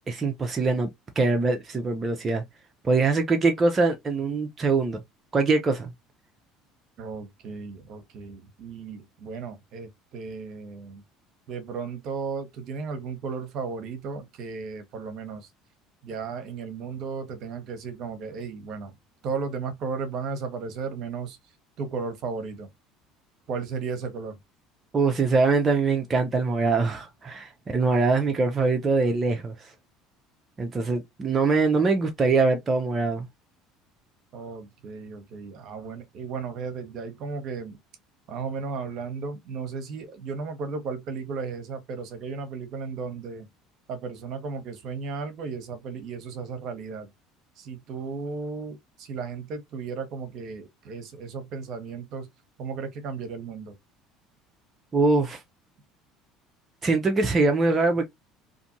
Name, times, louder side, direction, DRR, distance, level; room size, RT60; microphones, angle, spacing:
voice 1, 0.1-0.9 1.2-2.4 2.8-5.0 5.3-5.9 24.9-29.7 30.6-33.3 54.9-55.4 56.8-58.0, right 3 dB, 30° right, 0.6 m, -23 dB
voice 2, 7.0-11.0 11.5-15.5 16.0-18.9 19.2-21.4 21.8-22.7 23.5-24.4 34.3-37.8 38.3-43.5 43.9-47.1 47.6-52.3 52.6-53.8, right 5 dB, 60° right, 0.9 m, -35 dB
2.6 x 2.5 x 2.7 m
hypercardioid pair, 75°, 0 cm